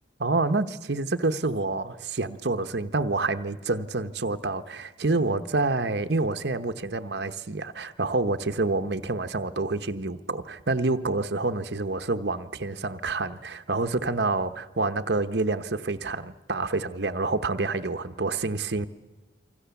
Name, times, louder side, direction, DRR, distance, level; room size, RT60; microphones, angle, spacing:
voice 1, 0.2-18.9, right 3 dB, 60° right, 1.0 m, -28 dB
27.5 x 25.0 x 7.1 m
head